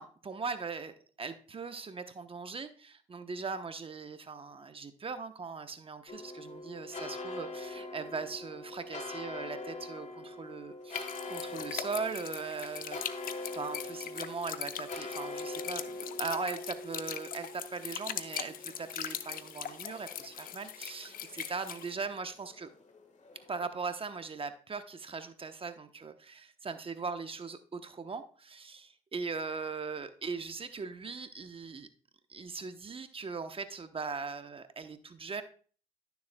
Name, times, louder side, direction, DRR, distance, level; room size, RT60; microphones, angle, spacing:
voice 1, 0.0-13.0 13.5-22.7 23.5-31.9 32.3-35.4, right 4 dB, 35° right, 9 dB, 0.9 m, -40 dB
sound 1, 6.1-23.7, left 2 dB, 50° left, 1.5 m, -44 dB
sound 2, 10.9-21.9, left 9 dB, 65° left, 0.6 m, -41 dB
12.0 x 6.9 x 2.2 m, 0.42 s
supercardioid pair, 60°, 16 cm